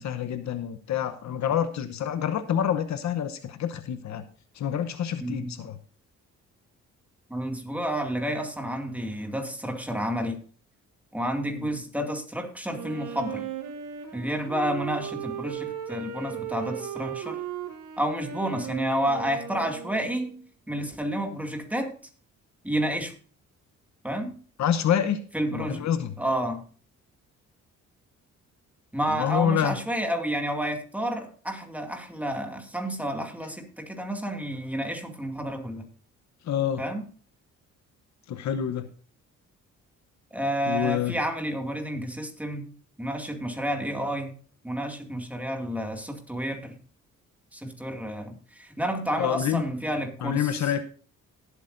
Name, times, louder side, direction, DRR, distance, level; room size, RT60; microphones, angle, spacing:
voice 1, 0.0-4.2 4.5-5.8 11.6-11.7 24.6-25.2 25.5-26.1 29.1-29.8 36.5-36.8 38.3-38.9 40.7-41.2 49.2-49.6 50.2-50.8, left 9 dB, 65° left, 10 dB, 1.0 m, -27 dB
voice 2, 5.2-5.5 7.3-10.4 11.1-13.4 14.1-17.4 18.0-20.4 20.7-21.9 22.6-23.1 24.0-24.4 25.3-25.8 26.2-26.6 28.9-35.9 36.8-37.0 40.3-42.7 43.0-44.3 44.6-46.8 47.5-50.7, right 1 dB, 5° right, 4 dB, 2.3 m, -30 dB
Wind instrument woodwind instrument, 12.7-20.4, right 9 dB, 85° right, 1.8 m, -36 dB
18.5 x 8.3 x 2.6 m, 0.41 s
cardioid pair, 90°, 30 cm